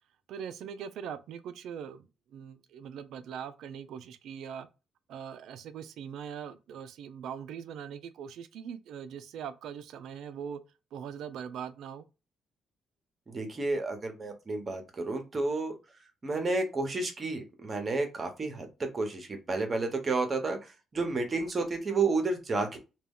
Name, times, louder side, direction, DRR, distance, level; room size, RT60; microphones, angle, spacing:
voice 1, 0.3-4.7 5.1-10.6 10.9-12.1, right 8 dB, 80° right, 0.3 m, -41 dB
voice 2, 13.3-15.8 16.2-22.8, right 3 dB, 35° right, 0.8 m, -31 dB
2.3 x 2.1 x 3.5 m
cardioid pair, 90°, 0 cm